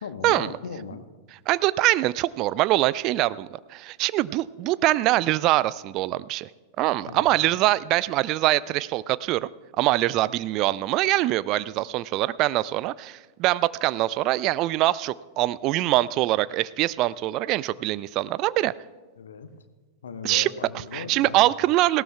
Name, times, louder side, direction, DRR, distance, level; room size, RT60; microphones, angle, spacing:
voice 1, 0.0-1.1 7.0-7.3 19.2-19.5 20.0-21.5, left 5 dB, 65° left, 11 dB, 0.9 m, -37 dB
voice 2, 1.5-6.5 6.8-9.5 9.8-18.7 20.2-20.5 20.9-22.0, right 16 dB, 40° right, 19 dB, 0.3 m, -23 dB
18.5 x 17.0 x 2.3 m, 1.3 s
figure-of-eight pair, 90°, 0 cm